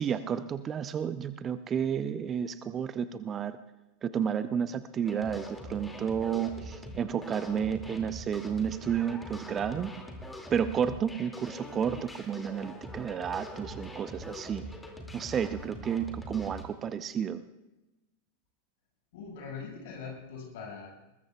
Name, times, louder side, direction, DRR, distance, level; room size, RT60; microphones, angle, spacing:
voice 1, 0.0-3.6 4.0-9.9 10.5-14.6 15.1-17.4, right 8 dB, 25° right, 13 dB, 0.6 m, -31 dB
sound 1, 5.0-16.6, equal, 5° left, 2.3 m, -43 dB
voice 2, 19.1-20.9, left 5 dB, 55° left, 1 dB, 5.6 m, -42 dB
22.0 x 20.5 x 2.3 m, 1.0 s
figure-of-eight pair, 90°, 0 cm